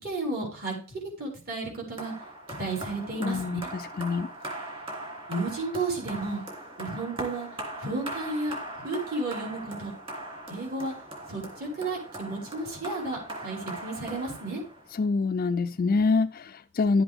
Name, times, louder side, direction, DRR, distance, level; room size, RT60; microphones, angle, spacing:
voice 1, 0.0-0.7 1.2-2.1 2.6-3.6 5.3-6.4 6.8-7.5 7.8-8.6 8.8-9.9 10.5-10.9 11.3-14.6, right 2 dB, 50° right, 5.1 m, -32 dB
sound 1, 2.0-15.0, right 1 dB, 25° right, 3.1 m, -40 dB
voice 2, 3.2-4.3 15.0-17.0, left 4 dB, 45° left, 0.4 m, -26 dB
11.5 x 7.9 x 3.6 m
head